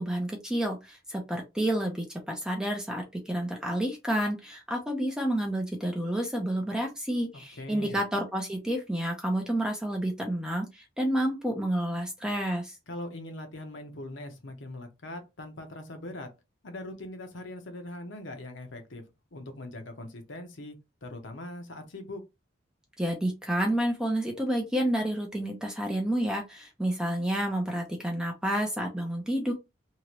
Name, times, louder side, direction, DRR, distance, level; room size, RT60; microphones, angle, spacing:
voice 1, 0.0-12.8 23.0-29.5, right 1 dB, 5° right, 0.5 m, -30 dB
voice 2, 7.5-8.0 12.9-16.3 16.6-19.0 19.3-22.2, left 1 dB, 65° left, 0.8 m, -41 dB
2.9 x 2.5 x 2.9 m
head